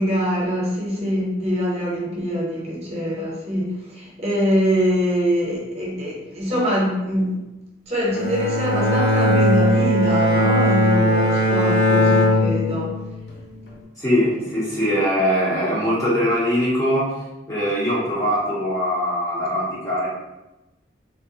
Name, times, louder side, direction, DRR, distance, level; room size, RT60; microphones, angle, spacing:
voice 1, 0.0-7.4 7.9-13.0, equal, 35° right, -5 dB, 0.8 m, -23 dB
Bowed string instrument, 8.1-13.3, left 1 dB, 65° left, 0.6 m, -19 dB
voice 2, 14.0-17.1 17.5-20.1, equal, 15° left, -7 dB, 0.6 m, -21 dB
3.4 x 2.2 x 2.7 m, 1.0 s
head